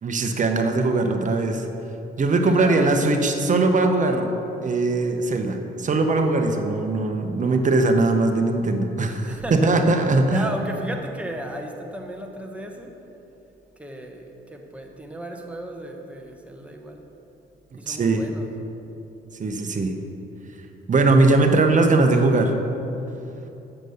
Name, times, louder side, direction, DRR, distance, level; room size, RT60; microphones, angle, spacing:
voice 1, 0.0-1.7 2.2-4.3 4.6-10.5 17.9-18.2 19.4-19.9 20.9-22.5, right 3 dB, 40° right, 5 dB, 1.0 m, -20 dB
voice 2, 2.4-3.4 9.2-12.9 13.8-17.0 17.8-18.5, right 1 dB, 5° right, 2 dB, 1.1 m, -35 dB
7.5 x 6.8 x 6.5 m, 2.9 s
cardioid pair, 90°, 20 cm